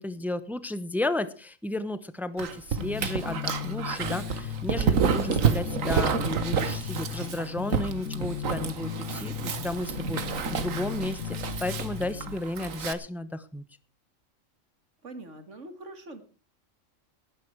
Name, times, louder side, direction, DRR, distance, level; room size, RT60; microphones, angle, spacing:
voice 1, 0.0-13.6, left 2 dB, ahead, 13 dB, 0.8 m, -33 dB
Dog, 2.4-12.9, right 6 dB, 80° right, 1.6 m, -29 dB
sound 1, 2.8-12.4, left 10 dB, 90° left, 1.4 m, -36 dB
voice 2, 15.0-16.2, right 2 dB, 65° right, 9 dB, 2.3 m, -43 dB
18.5 x 10.0 x 4.7 m, 0.37 s
omnidirectional pair, 1.3 m